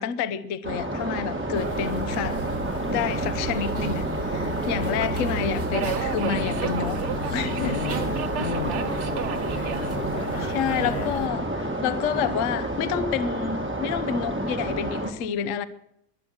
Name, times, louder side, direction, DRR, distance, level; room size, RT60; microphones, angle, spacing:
voice 1, 0.0-2.4 2.9-7.0 7.3-7.9 9.5-9.8 10.4-15.7, left 8 dB, 60° left, 13 dB, 1.0 m, -29 dB
sound 1, 0.6-15.1, right 1 dB, 10° right, 1.1 m, -30 dB
Subway metro underground, 0.9-13.0, right 8 dB, 60° right, 0.8 m, -38 dB
sound 2, 1.5-11.3, right 2 dB, 35° right, 1.8 m, -33 dB
voice 2, 7.4-8.1 8.4-8.9 9.7-11.2, left 7 dB, 80° left, 12 dB, 1.5 m, -35 dB
22.5 x 7.9 x 6.4 m, 0.79 s
omnidirectional pair, 1.7 m